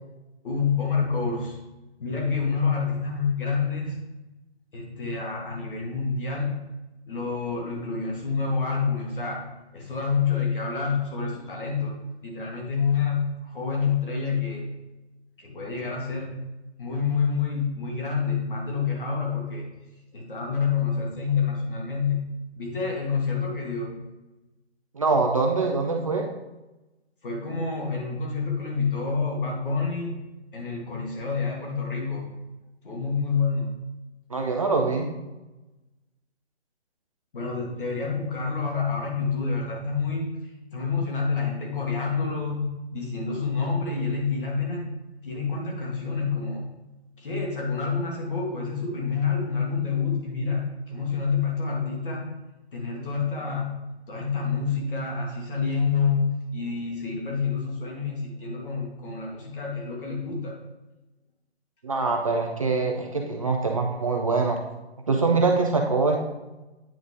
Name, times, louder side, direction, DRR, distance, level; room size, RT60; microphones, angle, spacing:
voice 1, 0.4-1.6 2.0-4.0 4.7-6.6 7.1-9.4 9.7-11.9 12.2-14.7 15.4-16.4 16.8-19.7 20.1-22.3 22.6-24.0 27.2-30.2 30.5-32.3 32.8-33.7 37.3-40.3 40.7-44.9 45.2-46.7 47.2-52.3 52.7-60.6, left 5 dB, 50° left, -1 dB, 2.1 m, -28 dB
voice 2, 24.9-26.3 34.3-35.1 61.8-64.6 65.1-66.2, right 3 dB, 30° right, 2 dB, 0.5 m, -24 dB
9.1 x 3.9 x 3.6 m, 1.0 s
figure-of-eight pair, 155°, 34 cm